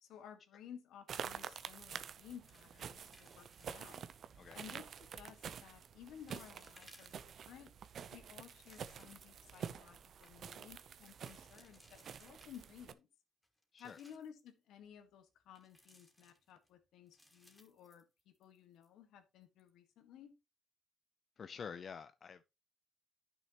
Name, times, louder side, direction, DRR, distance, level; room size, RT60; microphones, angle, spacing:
voice 1, 0.0-4.0 4.5-7.7 8.1-13.1 13.8-20.4, left 9 dB, 85° left, 1.6 m, -56 dB
sound 1, 1.1-12.9, right 7 dB, 60° right, 0.7 m, -49 dB
sound 2, 2.2-4.2 4.9-5.2 5.8-5.9 6.3-7.6 8.1-9.4 9.8-9.9 10.1-10.3 11.0-12.9 13.4-14.4 15.6-16.7 17.1-18.6 18.8-18.9 19.4-19.7, left 1 dB, 5° left, 2.7 m, -66 dB
voice 2, 21.4-22.4, left 6 dB, 50° left, 0.5 m, -48 dB
11.0 x 6.4 x 3.0 m
cardioid pair, 90°, 0 cm